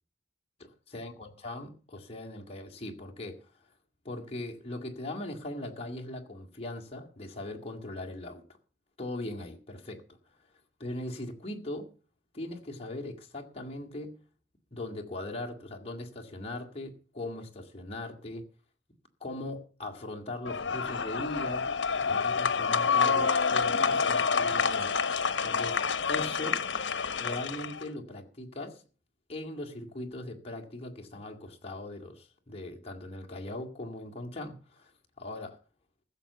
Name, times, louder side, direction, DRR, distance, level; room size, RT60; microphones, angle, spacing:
voice 1, 0.9-3.4 4.0-8.4 9.0-10.0 10.8-11.9 12.3-14.1 14.7-18.4 19.2-21.7 22.0-25.8 26.0-26.6 27.2-28.8 29.3-34.9 35.2-35.6, left 2 dB, 35° left, 2.2 m, -39 dB
sound 1, 20.5-27.8, left 5 dB, 85° left, 1.1 m, -28 dB
15.0 x 6.9 x 8.1 m
head